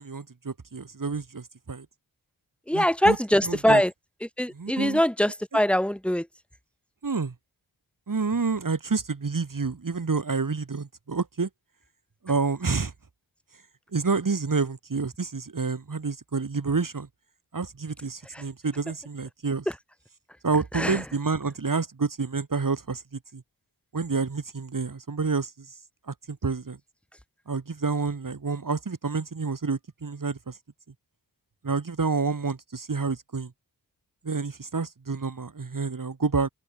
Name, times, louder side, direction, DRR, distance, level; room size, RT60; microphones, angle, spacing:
voice 1, 0.0-1.9 2.7-3.8 4.5-5.0 7.0-7.3 8.1-11.5 12.2-12.9 13.9-17.1 17.5-19.7 20.4-23.0 23.3-23.4 23.9-25.7 26.1-26.8 27.5-30.6 31.6-33.5 34.2-36.5, right 4 dB, 50° right, 4.0 m, -29 dB
voice 2, 2.7-3.9 4.4-6.2 20.8-20.9, equal, 5° left, 2.4 m, -22 dB
open air
cardioid pair, 50°, 40 cm